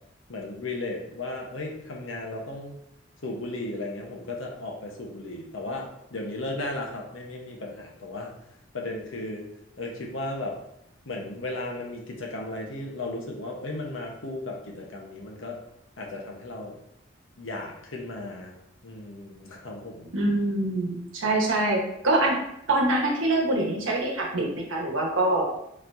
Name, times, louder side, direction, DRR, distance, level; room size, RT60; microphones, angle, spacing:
voice 1, 0.3-2.8 3.2-8.3 8.7-9.5 9.8-10.6 11.1-15.6 16.0-16.8 17.4-18.5 18.8-20.1, left 2 dB, 85° left, 0 dB, 1.0 m, -35 dB
voice 2, 20.1-22.4 22.7-25.5, right 2 dB, 85° right, 0 dB, 1.1 m, -24 dB
4.3 x 4.2 x 2.6 m, 0.77 s
head